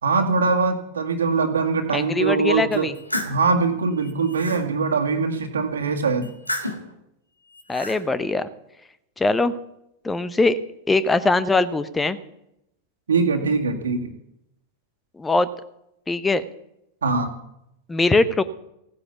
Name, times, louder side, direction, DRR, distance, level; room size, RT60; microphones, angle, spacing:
voice 1, 0.0-2.9 3.3-6.3 13.1-14.1 17.0-17.3, right 4 dB, 70° right, 4 dB, 1.9 m, -22 dB
voice 2, 1.9-2.9 7.7-8.5 9.2-9.6 10.0-10.6 10.9-12.2 15.2-15.5 16.1-16.4 17.9-18.4, left 3 dB, 10° left, 16 dB, 0.8 m, -21 dB
sound 1, 2.7-3.4 4.0-4.6 6.2-6.9 7.5-8.0, left 1 dB, 85° left, 1.8 m, -31 dB
16.0 x 9.8 x 7.1 m, 0.82 s
figure-of-eight pair, 90°, 0 cm